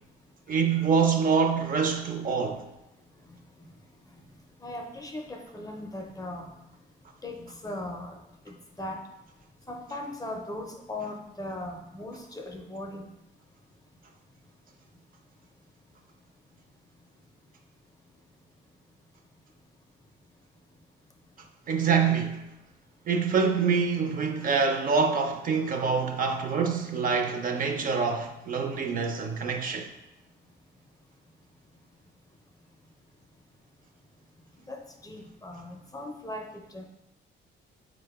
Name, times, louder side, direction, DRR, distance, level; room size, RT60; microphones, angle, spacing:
voice 1, 0.5-2.6 21.7-22.4 23.1-29.9, right 5 dB, 45° right, 0.5 m, -25 dB
voice 2, 4.6-6.5 7.2-8.2 8.5-9.0 9.7-13.1 34.7-34.8 35.0-36.5 36.7-36.8, left 1 dB, 20° left, 0.4 m, -38 dB
4.3 x 2.0 x 3.4 m
cardioid pair, 90°, 20 cm